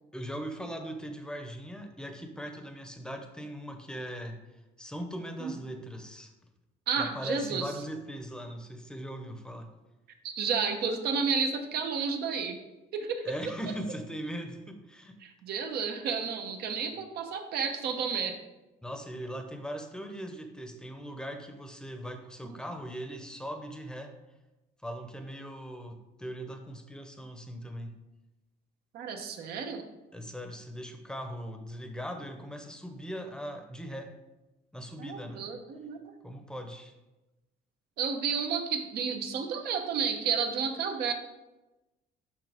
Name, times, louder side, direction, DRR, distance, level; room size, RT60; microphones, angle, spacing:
voice 1, 0.1-4.4 4.8-6.3 7.0-9.7 13.2-15.2 16.8-16.9 18.8-24.2 24.8-28.0 30.1-34.1 34.7-35.5 36.2-36.9, equal, 5° left, 6 dB, 0.8 m, -40 dB
voice 2, 6.9-7.7 10.2-12.6 12.9-13.3 15.2-18.4 22.4-22.5 28.9-29.9 35.0-36.0 38.0-41.1, right 6 dB, 70° right, 5 dB, 0.9 m, -31 dB
6.5 x 5.6 x 3.5 m, 1.0 s
cardioid pair, 110°, 17 cm